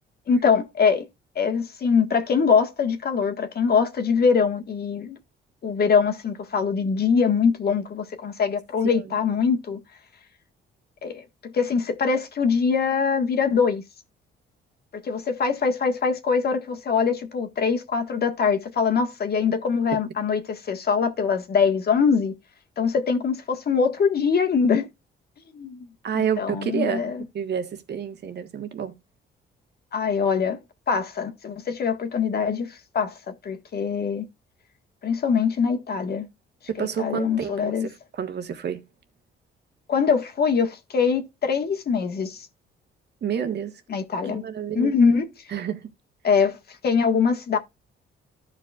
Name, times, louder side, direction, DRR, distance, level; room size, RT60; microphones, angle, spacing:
voice 1, 0.3-1.1 1.3-5.2 5.6-9.8 11.0-13.8 15.0-22.3 22.8-24.9 25.5-25.9 26.1-27.2 29.9-30.6 30.9-33.2 33.4-34.2 35.0-36.3 36.8-37.9 39.9-42.5 43.9-44.4 44.7-45.3 46.2-46.6 46.8-47.6, left 6 dB, 55° left, 1.6 m, -23 dB
voice 2, 26.0-28.9 36.7-38.8 43.2-43.8 44.2-44.9 45.5-45.9, right 8 dB, 60° right, 1.6 m, -29 dB
14.5 x 5.2 x 2.4 m
cardioid pair, 90°, 20 cm